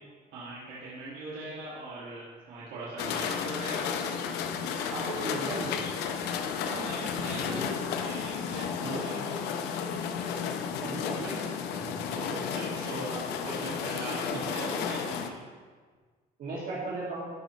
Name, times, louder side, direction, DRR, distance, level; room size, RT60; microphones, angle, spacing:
voice 1, 0.3-3.9 6.6-7.6 8.0-9.6 11.2-11.4 12.1-15.4, right 2 dB, 80° right, -8 dB, 2.0 m, -40 dB
sound 1, 3.0-15.3, left 7 dB, 85° left, 0.6 m, -33 dB
voice 2, 4.9-5.8 7.3-7.8 8.8-9.2 10.8-11.3 11.9-12.0 12.7-13.1 16.4-17.3, right 2 dB, 60° right, -7 dB, 2.1 m, -36 dB
13.0 x 5.2 x 3.1 m, 1.5 s
cardioid pair, 110°, 17 cm